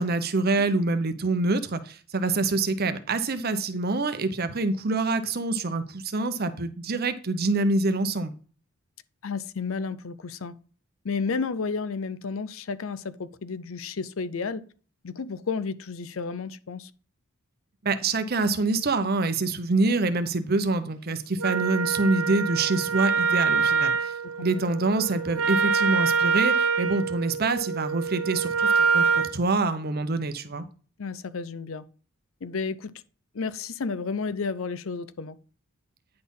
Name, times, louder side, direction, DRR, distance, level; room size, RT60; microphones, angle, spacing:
voice 1, 0.0-8.3 17.8-24.1 24.4-30.6, right 3 dB, 45° right, 0.8 m, -26 dB
voice 2, 9.2-10.5 11.0-14.6 15.0-16.9 24.2-24.6 31.0-31.8 32.4-32.9 33.3-35.4, left 5 dB, 65° left, 0.6 m, -32 dB
Wind instrument woodwind instrument, 21.4-29.4, right 5 dB, 80° right, 0.9 m, -25 dB
9.7 x 4.2 x 5.4 m
head